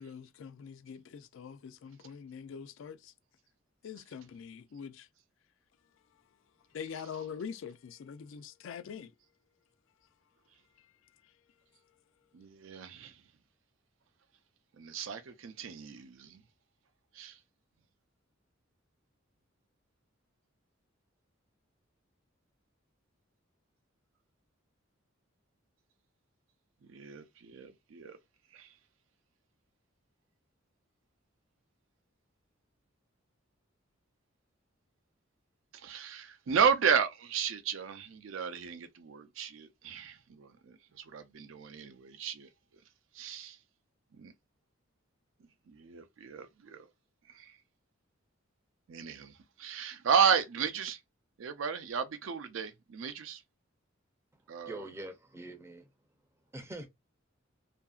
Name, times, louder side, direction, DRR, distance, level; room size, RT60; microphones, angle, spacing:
voice 1, 0.0-3.1 3.8-5.1 6.7-9.1 10.8-11.3, left 7 dB, 70° left, 0.3 m, -44 dB
voice 2, 12.3-13.1 14.8-16.4 17.1-17.4 26.9-28.2 28.5-28.7 35.7-42.5 43.1-43.6 44.2-44.3 45.7-46.9 47.3-47.6 48.9-49.3 49.6-51.0 51.4-53.4 54.5-54.9, right 7 dB, 70° right, 0.4 m, -33 dB
voice 3, 54.7-55.9 56.5-56.9, right 2 dB, 15° right, 0.5 m, -43 dB
2.7 x 2.5 x 2.3 m
head